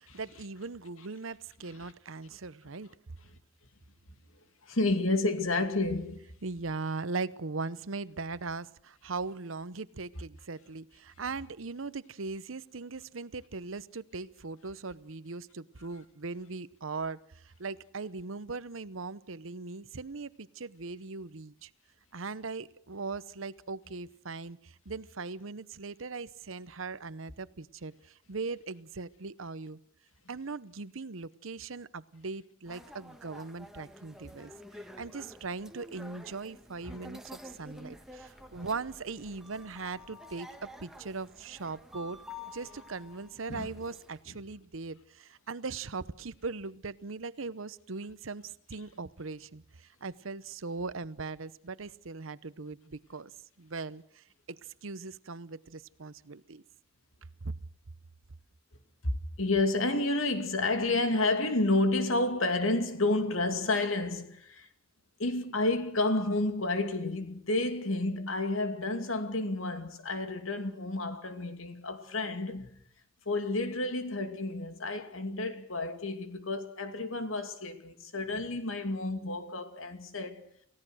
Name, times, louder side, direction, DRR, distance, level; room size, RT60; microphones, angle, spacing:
voice 1, 0.0-2.9 6.4-21.7 22.1-29.8 30.3-42.2 42.5-53.3 53.6-56.6 57.4-57.5, right 4 dB, 75° right, 0.9 m, -39 dB
voice 2, 4.6-6.3 43.5-43.7 59.0-59.1 59.4-64.7 65.2-72.7 73.3-80.5, left 2 dB, 85° left, 2.6 m, -30 dB
sound 1, 32.7-44.2, left 1 dB, ahead, 1.5 m, -50 dB
28.5 x 16.5 x 6.4 m
head